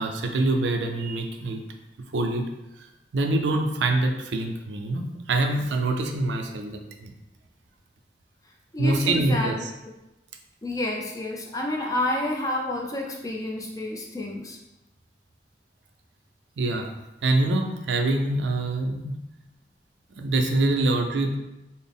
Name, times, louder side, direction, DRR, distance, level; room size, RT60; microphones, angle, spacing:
voice 1, 0.0-1.6 2.1-2.4 2.8-7.1 8.8-9.7 16.6-16.9 17.2-19.2 20.2-21.4, right 2 dB, 90° right, 4 dB, 0.4 m, -25 dB
voice 2, 8.7-9.5 10.6-14.6, left 1 dB, 20° left, -1 dB, 0.4 m, -29 dB
3.9 x 2.0 x 3.5 m, 0.96 s
head